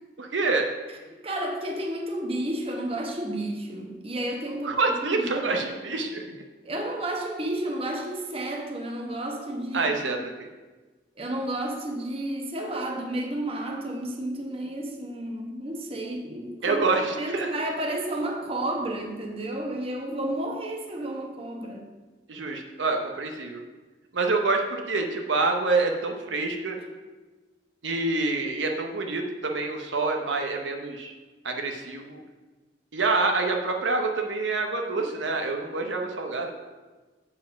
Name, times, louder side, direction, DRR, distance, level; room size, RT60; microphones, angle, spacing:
voice 1, 0.2-0.7 4.6-6.4 9.7-10.5 16.6-17.5 22.3-23.6 24.1-26.8 27.8-31.1 31.4-32.2 32.9-36.5, right 3 dB, 80° right, 3 dB, 0.8 m, -27 dB
voice 2, 1.2-5.6 6.6-9.9 11.2-16.9 17.1-21.8, right 1 dB, 30° right, 1 dB, 1.1 m, -31 dB
7.5 x 4.7 x 5.8 m, 1.3 s
head